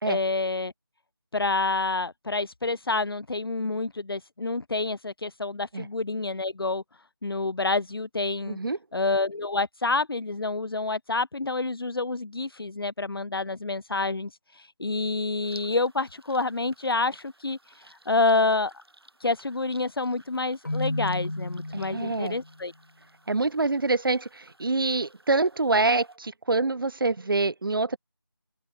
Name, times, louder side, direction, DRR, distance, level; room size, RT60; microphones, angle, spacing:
voice 1, 0.1-0.7 1.3-6.8 7.2-8.6 8.9-17.6 18.1-18.7 19.2-22.7, left 3 dB, 70° left, 0.6 m, -28 dB
voice 2, 8.5-8.8 21.7-22.4 23.3-28.0, right 3 dB, 65° right, 0.4 m, -26 dB
sound 1, 15.4-26.2, right 1 dB, 80° right, 4.1 m, -57 dB
Keyboard (musical), 20.6-22.5, left 2 dB, 50° left, 1.8 m, -32 dB
figure-of-eight pair, 180°, 13 cm